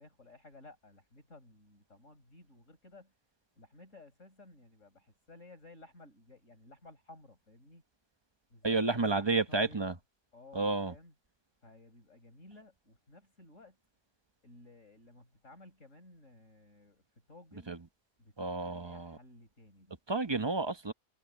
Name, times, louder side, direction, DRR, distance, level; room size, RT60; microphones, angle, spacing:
voice 1, 0.0-3.1 3.6-7.8 8.5-10.0 10.3-11.1 11.6-13.8 14.4-17.0 17.3-17.8 18.2-20.0, left 2 dB, 85° left, 6.3 m, -56 dB
voice 2, 8.6-9.9 10.5-10.9 17.7-17.8 18.4-19.2 20.1-20.9, right 3 dB, 25° right, 0.9 m, -31 dB
omnidirectional pair, 1.3 m